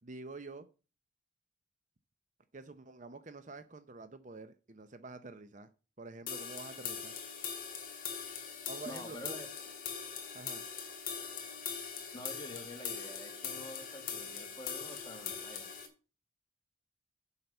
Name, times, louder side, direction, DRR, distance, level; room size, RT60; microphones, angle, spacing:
voice 1, 0.0-0.7 2.5-5.7 6.0-7.1 8.6-9.4 10.3-10.7, right 3 dB, 40° right, 0.7 m, -48 dB
sound 1, 6.3-15.9, left 7 dB, 45° left, 2.3 m, -41 dB
voice 2, 8.9-9.5 12.1-15.7, left 1 dB, 20° left, 2.1 m, -48 dB
7.7 x 5.8 x 6.9 m
head